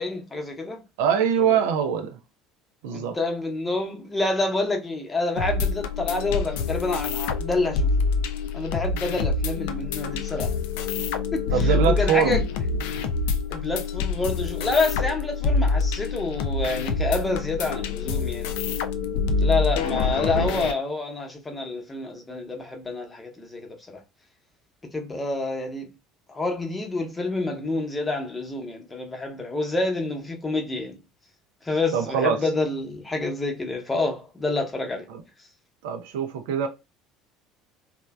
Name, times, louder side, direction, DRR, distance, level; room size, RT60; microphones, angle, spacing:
voice 1, 0.0-0.8 1.4-1.6 2.9-7.9 8.5-10.5 11.3-12.4 13.5-18.5 19.4-23.6 24.9-25.9 26.3-31.0 31.6-35.1, left 2 dB, 20° left, 0.8 m, -28 dB
voice 2, 1.0-2.2 2.8-3.2 11.5-12.4 31.9-32.4 35.1-35.2 35.8-36.7, right 8 dB, 70° right, 0.4 m, -23 dB
sound 1, 5.4-20.7, left 4 dB, 65° left, 0.3 m, -26 dB
3.1 x 2.1 x 2.2 m
figure-of-eight pair, 65°, 0 cm